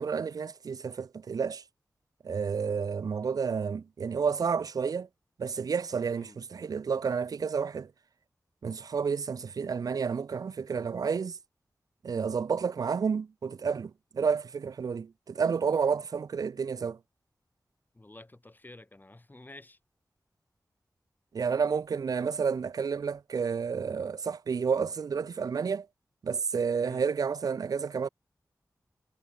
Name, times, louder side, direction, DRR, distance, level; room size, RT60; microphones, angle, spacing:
voice 1, 0.0-1.6 2.2-5.1 5.4-7.9 8.6-11.4 12.0-17.0 21.3-25.9 26.2-28.1, right 6 dB, 65° right, 0.4 m, -30 dB
voice 2, 17.9-19.8 26.8-27.0, left 2 dB, 25° left, 3.6 m, -50 dB
cardioid pair, 60°, 7 cm